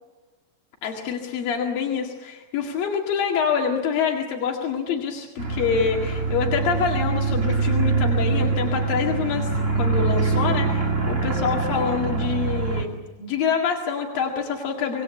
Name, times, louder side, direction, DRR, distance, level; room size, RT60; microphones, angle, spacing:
voice 1, 0.8-9.5 9.8-15.0, left 6 dB, 85° left, 0 dB, 3.9 m, -26 dB
sound 1, 5.4-12.8, right 4 dB, 25° right, 2.6 m, -24 dB
26.0 x 20.0 x 8.5 m, 1.2 s
omnidirectional pair, 3.9 m